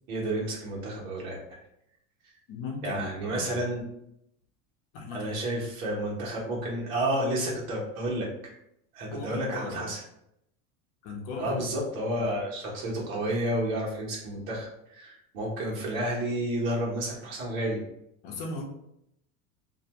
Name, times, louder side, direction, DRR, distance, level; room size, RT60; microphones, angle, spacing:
voice 1, 0.1-1.4 2.8-3.8 5.1-8.3 8.9-10.0 11.4-17.8, right 1 dB, 80° right, -3 dB, 1.1 m, -31 dB
voice 2, 2.5-3.6 4.9-5.3 9.1-9.9 11.0-11.6 18.2-18.6, left 3 dB, 50° left, 1 dB, 0.8 m, -37 dB
2.6 x 2.2 x 2.9 m, 0.78 s
supercardioid pair, 135°, 41 cm